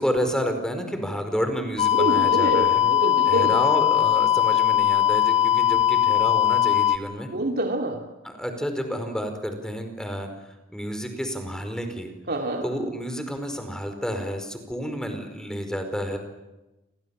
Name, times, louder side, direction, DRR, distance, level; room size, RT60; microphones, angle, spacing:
voice 1, 0.0-2.8 3.3-7.3 8.2-10.3 10.7-12.1 12.6-16.2, equal, 5° left, 6 dB, 4.9 m, -30 dB
sound 1, 1.8-7.0, left 11 dB, 35° left, 1.8 m, -20 dB
voice 2, 1.9-3.6 7.3-8.0 12.3-12.6, right 1 dB, 50° right, 2 dB, 2.6 m, -26 dB
29.5 x 26.0 x 7.2 m, 1.0 s
head